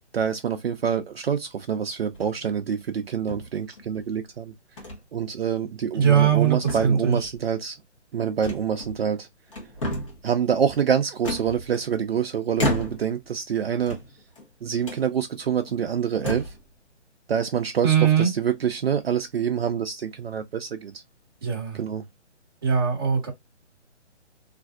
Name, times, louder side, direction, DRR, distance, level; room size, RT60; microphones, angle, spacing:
voice 1, 0.1-4.5 5.1-7.8 8.1-9.3 10.2-14.0 14.6-16.5 17.3-21.0 21.7-22.1, right 8 dB, 55° right, 0.5 m, -26 dB
sound 1, 2.1-2.5 3.3-4.0 4.8-5.0 5.4-5.5 6.0-6.4 6.7-7.4 8.4-9.2 9.5-10.3 11.2-12.1 12.5-13.2 13.8-14.5 14.8-15.0 15.7-15.8 16.1-16.6, left 1 dB, 25° left, 1.0 m, -32 dB
voice 2, 5.9-7.2 17.8-18.3 21.4-21.8 22.6-23.3, right 8 dB, 20° right, 0.8 m, -20 dB
3.2 x 2.5 x 2.3 m
hypercardioid pair, 170°, 36 cm